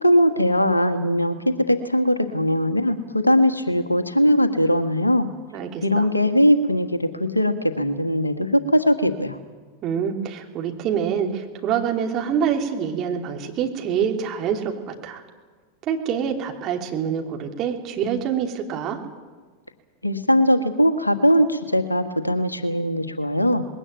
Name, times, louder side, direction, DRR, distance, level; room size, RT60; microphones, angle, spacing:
voice 1, 0.0-5.3 5.8-9.4 20.0-23.7, equal, 85° left, 9 dB, 1.5 m, -20 dB
voice 2, 5.5-6.1 9.8-15.2 15.8-19.0, right 7 dB, 35° right, 2 dB, 3.0 m, -26 dB
21.0 x 17.0 x 9.2 m, 1.4 s
figure-of-eight pair, 90°, 0 cm